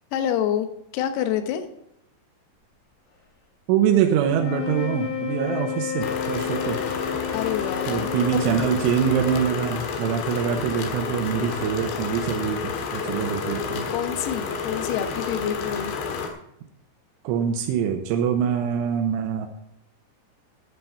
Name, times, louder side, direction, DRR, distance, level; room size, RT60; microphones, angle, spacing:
voice 1, 0.1-0.7 0.9-1.7 7.3-8.1 13.9-15.9, left 10 dB, 90° left, 8 dB, 3.8 m, -27 dB
voice 2, 3.7-6.8 7.9-13.8 17.2-19.5, right 8 dB, 80° right, 3 dB, 3.3 m, -24 dB
sound 1, 4.3-9.7, left 9 dB, 50° left, 3.5 m, -31 dB
sound 2, 6.0-16.3, left 5 dB, 70° left, 3.7 m, -30 dB
11.5 x 8.6 x 5.9 m, 0.77 s
omnidirectional pair, 5.9 m